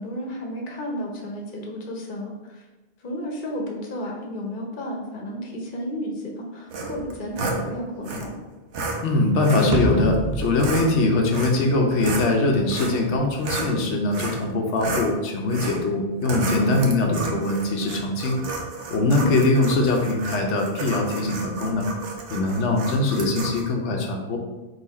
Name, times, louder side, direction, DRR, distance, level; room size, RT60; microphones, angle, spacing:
voice 1, 0.0-2.6 3.0-8.4 16.6-16.8 19.2-19.4, equal, 50° left, 0 dB, 0.9 m, -32 dB
sound 1, 6.7-7.6 8.0-8.2 8.7-9.0 9.4-9.7 10.4-10.9 11.3-11.7 12.0-13.7 14.1-14.4 14.8-15.1 15.5-15.8 16.2-23.6, right 3 dB, 85° right, 1.0 m, -32 dB
voice 2, 9.0-18.4 18.9-21.9 22.3-24.4, left 2 dB, 85° left, 1 dB, 1.0 m, -22 dB
sound 2, 9.7-12.2, right 2 dB, 55° right, 0.4 m, -28 dB
3.9 x 2.7 x 4.1 m, 1.1 s
omnidirectional pair, 1.1 m